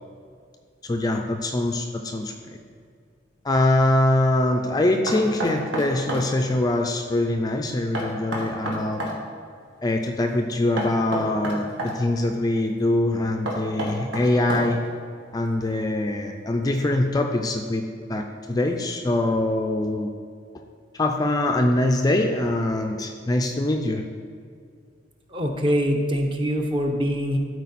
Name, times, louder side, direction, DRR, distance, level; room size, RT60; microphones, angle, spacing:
voice 1, 0.8-2.6 3.4-9.0 9.8-14.8 15.3-17.8 18.1-20.1 20.9-24.0, left 1 dB, 20° left, 4 dB, 0.4 m, -23 dB
Knock, 5.1-6.3 7.9-9.2 10.8-11.9 13.5-14.9, right 1 dB, 70° right, 1.6 m, -29 dB
voice 2, 25.3-27.4, equal, 25° right, 3 dB, 0.8 m, -24 dB
12.5 x 4.7 x 4.1 m, 2.2 s
head